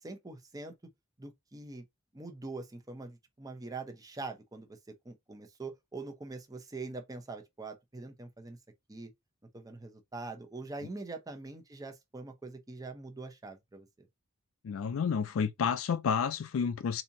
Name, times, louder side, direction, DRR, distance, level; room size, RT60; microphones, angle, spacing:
voice 1, 0.0-0.7 1.2-1.8 2.1-4.8 5.0-8.6 8.9-9.1 9.5-14.1, right 3 dB, 20° right, 0.7 m, -43 dB
voice 2, 14.6-17.0, left 6 dB, 85° left, 0.4 m, -30 dB
4.2 x 2.7 x 2.7 m
head